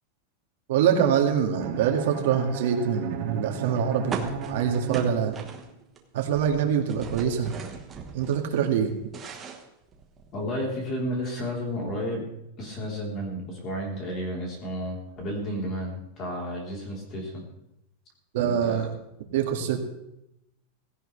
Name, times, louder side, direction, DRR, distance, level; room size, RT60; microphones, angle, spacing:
voice 1, 0.7-5.4 6.1-7.5 8.1-8.9 18.3-18.9 19.3-19.8, right 8 dB, 60° right, 3 dB, 2.1 m, -24 dB
Bowed string instrument, 1.6-5.7, right 6 dB, 40° right, 2.4 m, -36 dB
sound 1, 4.1-6.0 6.2-8.4 8.8-10.4, right 6 dB, 15° right, 1.4 m, -38 dB
voice 2, 10.3-12.3 12.6-17.4 18.4-18.8, equal, 25° left, -1 dB, 3.9 m, -32 dB
16.5 x 16.5 x 3.4 m, 0.85 s
supercardioid pair, 175°, 0 cm